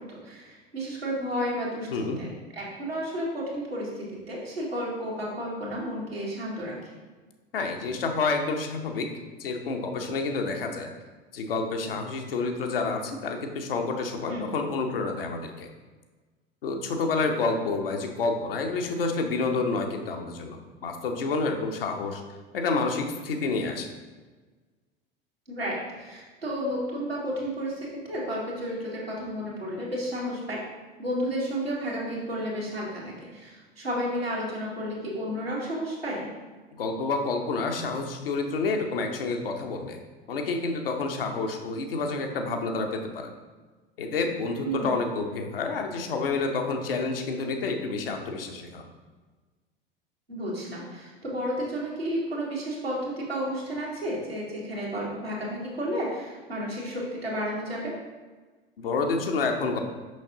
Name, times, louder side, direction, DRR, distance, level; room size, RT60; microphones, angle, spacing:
voice 1, 0.0-2.3 2.5-7.0 14.3-14.5 25.5-30.6 31.0-36.3 44.6-44.9 50.3-57.9, equal, 90° right, -6 dB, 1.7 m, -32 dB
voice 2, 7.5-9.1 9.4-10.9 11.3-15.7 16.6-22.2 22.5-23.9 36.8-40.0 40.3-43.3 44.0-48.9 58.8-59.8, left 3 dB, 70° left, 4 dB, 0.8 m, -29 dB
6.2 x 5.8 x 2.8 m, 1.3 s
figure-of-eight pair, 75°, 29 cm